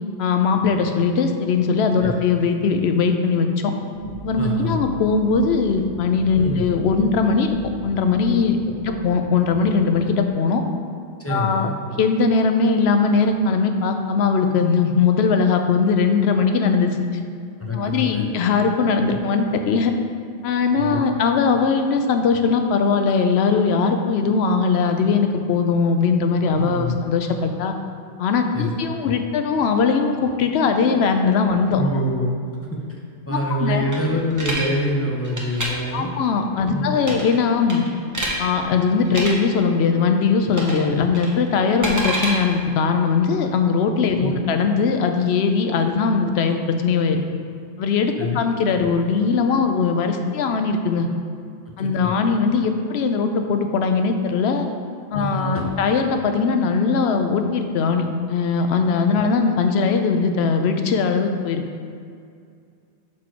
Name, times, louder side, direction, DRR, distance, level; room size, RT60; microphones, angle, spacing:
voice 1, 0.2-3.7 4.2-7.6 7.8-8.6 8.8-10.6 11.3-11.7 12.0-17.2 17.7-19.9 20.4-27.7 28.2-31.8 33.3-33.8 35.9-37.8 38.4-47.2 47.8-51.1 51.8-54.7 55.1-61.6, left 5 dB, 75° left, 6 dB, 0.8 m, -20 dB
sound 1, 3.9-10.2, equal, 80° right, 1.1 m, -35 dB
voice 2, 4.4-4.8 6.3-6.6 8.6-9.0 11.2-11.8 17.6-18.3 19.1-19.2 20.8-21.0 26.6-27.0 28.5-29.1 31.8-32.3 32.7-33.0 33.3-36.1 36.7-37.1 41.0-41.1 44.1-44.4 48.2-48.4 51.8-52.2 55.1-55.7, equal, 15° left, -2 dB, 0.6 m, -26 dB
sound 2, 33.9-34.7 35.2-35.7 37.0-37.4 37.7-38.4 39.1-39.3 40.5-40.9 41.1-42.3, right 1 dB, 20° right, 0.8 m, -27 dB
6.2 x 4.5 x 4.5 m, 2.3 s
omnidirectional pair, 1.1 m